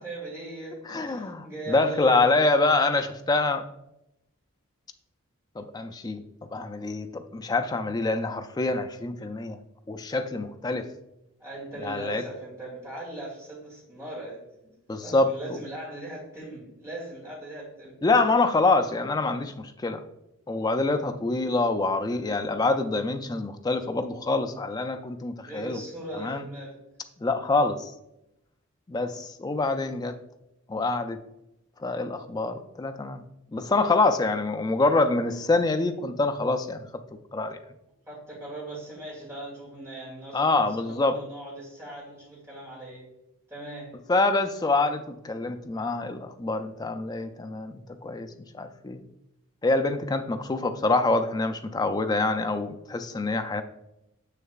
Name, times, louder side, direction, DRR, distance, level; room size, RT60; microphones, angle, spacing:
voice 1, 0.0-2.5 11.4-14.7 15.0-18.0 21.2-21.5 25.4-26.8 38.1-43.1 43.5-44.0, right 1 dB, 15° right, -6 dB, 2.3 m, -39 dB
voice 2, 0.9-3.6 5.6-6.2 6.5-9.6 9.9-10.9 11.8-12.2 14.9-15.6 18.0-20.0 20.5-25.8 26.2-26.4 27.2-27.9 28.9-30.2 30.7-31.2 31.8-33.2 33.5-37.0 37.3-37.6 40.3-41.2 44.1-49.0 49.6-53.6, left 3 dB, 20° left, 8 dB, 0.3 m, -26 dB
6.5 x 6.4 x 2.4 m, 0.87 s
head